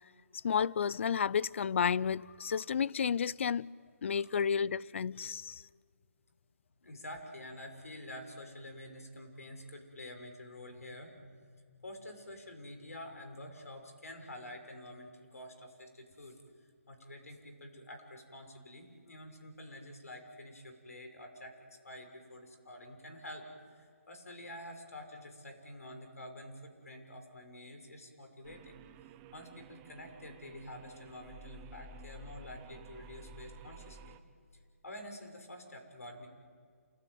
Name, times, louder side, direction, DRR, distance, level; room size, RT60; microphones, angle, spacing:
voice 1, 0.4-3.7 4.0-5.6, left 7 dB, 55° left, 0.6 m, -31 dB
voice 2, 6.8-16.4 16.9-28.8 29.3-34.1 34.8-36.3, left 1 dB, 80° left, 6.4 m, -48 dB
sound 1, 28.4-34.2, right 3 dB, 20° right, 1.1 m, -53 dB
28.5 x 18.0 x 9.5 m
hypercardioid pair, 150°, 8 cm